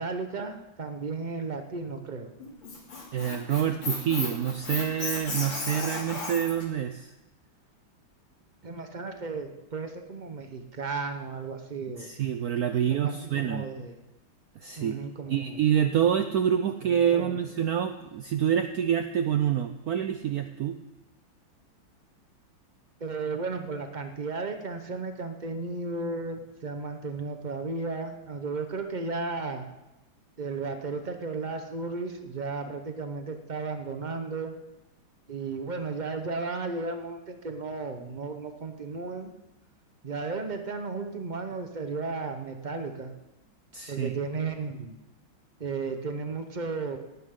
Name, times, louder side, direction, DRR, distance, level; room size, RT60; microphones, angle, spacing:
voice 1, 0.0-2.3 8.6-12.1 12.9-13.9 14.8-15.6 16.8-17.4 23.0-29.7 30.4-34.5 35.3-39.3 40.0-43.1 43.9-45.0 45.6-47.0, right 4 dB, 45° right, 6 dB, 0.6 m, -34 dB
Squeak, 2.4-6.6, left 3 dB, 65° left, 3.5 m, -34 dB
voice 2, 3.1-7.1 12.0-13.6 14.6-15.0 15.3-20.8 43.7-44.1, right 9 dB, 75° right, 8 dB, 0.8 m, -27 dB
18.0 x 11.5 x 3.8 m, 0.96 s
omnidirectional pair, 2.2 m